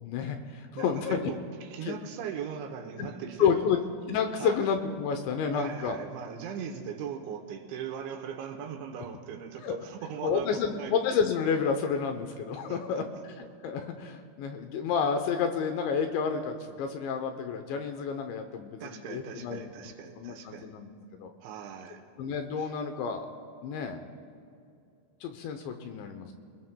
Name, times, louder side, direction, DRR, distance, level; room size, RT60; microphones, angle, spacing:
voice 1, 0.0-1.3 1.8-2.0 3.0-3.1 3.4-3.8 4.1-6.0 9.6-9.8 10.2-13.0 13.4-21.3 22.2-23.3 23.6-24.0 25.2-26.3, left 6 dB, 80° left, 6 dB, 2.8 m, -30 dB
voice 2, 0.7-3.7 4.4-4.6 5.5-10.9 12.7-13.0 18.8-20.7 21.4-22.0 22.6-22.7, right 8 dB, 75° right, 4 dB, 3.0 m, -39 dB
26.5 x 20.5 x 2.2 m, 2.5 s
omnidirectional pair, 5.7 m